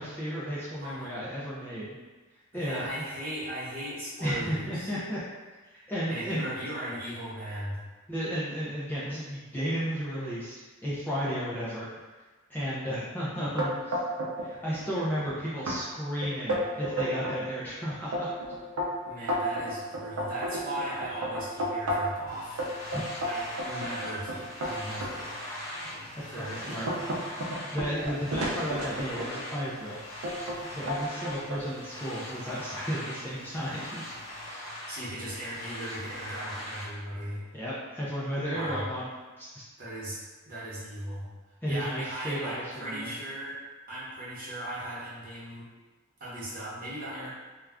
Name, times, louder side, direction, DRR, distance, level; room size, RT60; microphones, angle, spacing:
voice 1, 0.0-2.0 2.5-3.0 4.2-5.2 5.7-6.5 8.1-11.9 12.5-14.0 14.4-18.3 24.9-25.0 26.2-26.9 27.7-30.0 30.6-34.0 34.5-34.7 37.5-39.1 39.4-39.6 41.6-43.1, equal, 10° left, -9 dB, 0.4 m, -33 dB
voice 2, 0.8-1.1 2.5-4.9 6.1-7.8 19.0-22.6 23.3-25.3 26.3-27.3 34.9-37.4 38.5-38.9 39.8-40.2 40.5-41.3 41.6-43.6 43.9-45.7 46.2-47.3, right 1 dB, 40° right, -8 dB, 0.9 m, -37 dB
sound 1, 13.6-14.5 14.8-15.3 15.7-15.8 16.2-17.4 17.9-22.2 22.6-25.1 25.8-25.9 26.4-29.5 30.2-30.6 30.9-31.6, equal, 85° right, 0.5 m, -32 dB
sound 2, 22.3-36.9, left 1 dB, 65° left, 0.8 m, -41 dB
2.4 x 2.3 x 3.3 m, 1.3 s
head